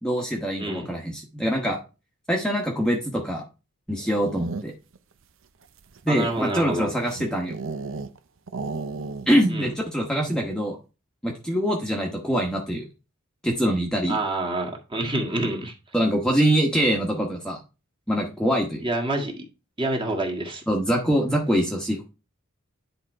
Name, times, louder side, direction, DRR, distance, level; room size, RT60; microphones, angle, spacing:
voice 1, 0.0-1.8 2.3-3.4 3.9-4.7 6.0-7.6 9.3-10.8 11.2-12.9 13.4-14.2 15.9-17.6 18.1-18.8 20.7-22.1, equal, 5° left, -1 dB, 1.1 m, -24 dB
voice 2, 0.6-0.9 6.1-6.9 9.5-9.7 14.1-15.7 18.8-19.5 19.8-20.6, right 2 dB, 25° right, 1 dB, 1.8 m, -27 dB
sound 1, 3.9-5.0 5.6-8.2 8.5-9.6 9.8-9.9 10.2-10.6, right 3 dB, 65° right, 0.6 m, -35 dB
10.0 x 3.8 x 4.6 m, 0.30 s
head